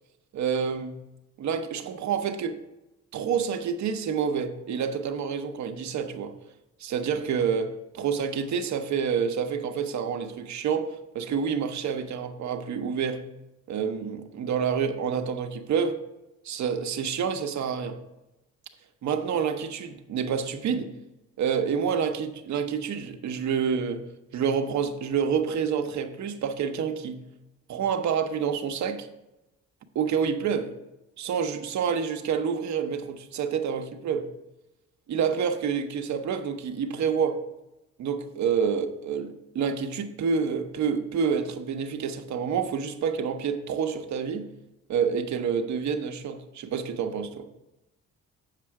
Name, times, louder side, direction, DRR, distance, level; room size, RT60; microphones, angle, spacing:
voice 1, 0.3-1.0 1.4-2.6 3.1-6.3 6.8-13.2 13.7-16.0 16.4-18.0 19.0-20.9 21.4-24.0 24.3-27.2 27.7-29.1 29.9-30.7 31.2-34.3 35.1-37.4 38.0-44.5 44.9-47.5, right 6 dB, 65° right, 0.9 m, -28 dB
7.6 x 6.7 x 4.7 m
cardioid pair, 90°, 30 cm